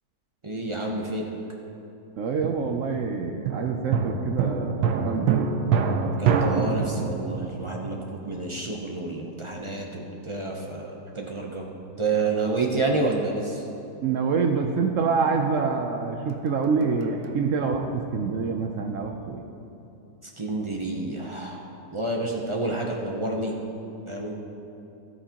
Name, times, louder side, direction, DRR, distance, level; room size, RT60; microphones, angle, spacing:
voice 1, 0.4-1.2 6.2-11.7 12.0-13.6 20.4-21.6 21.9-23.5 24.1-24.4, right 3 dB, 50° right, -1 dB, 0.3 m, -29 dB
voice 2, 2.2-5.5 14.0-19.4, right 5 dB, 65° right, 4 dB, 0.8 m, -26 dB
sound 1, 2.4-8.8 16.3-17.4, right 6 dB, 85° right, 1.2 m, -27 dB
13.0 x 9.4 x 2.9 m, 2.8 s
omnidirectional pair, 1.7 m